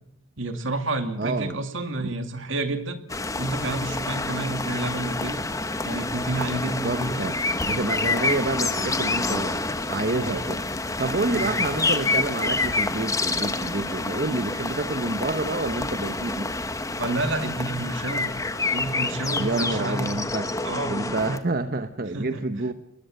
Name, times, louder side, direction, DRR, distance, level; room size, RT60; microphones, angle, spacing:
voice 1, 0.4-3.0 3.4-5.4 5.8-7.3 10.2-10.4 11.3-11.6 17.0-18.3 18.7-20.2 20.6-21.0 22.1-22.7, right 2 dB, 60° right, 8 dB, 2.3 m, -29 dB
voice 2, 1.2-1.6 2.0-2.2 6.6-7.4 7.7-9.6 9.9-16.5 19.4-20.5 20.9-22.7, right 2 dB, 45° right, 9 dB, 0.9 m, -28 dB
sound 1, 3.1-21.4, left 3 dB, 15° left, 1.2 m, -28 dB
24.0 x 21.0 x 7.7 m, 0.81 s
head